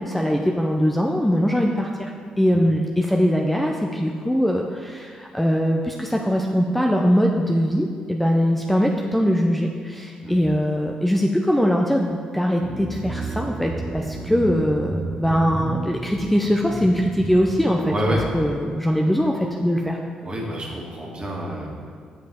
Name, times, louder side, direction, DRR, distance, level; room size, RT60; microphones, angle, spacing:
voice 1, 0.0-2.1 2.4-17.9 18.3-20.0, equal, 5° left, 0 dB, 0.6 m, -21 dB
sound 1, 12.6-18.2, right 2 dB, 15° right, 1.5 m, -32 dB
voice 2, 17.9-18.2 20.2-21.7, equal, 35° right, -3 dB, 1.9 m, -27 dB
7.1 x 5.2 x 4.4 m, 2.1 s
hypercardioid pair, 45°, 3 cm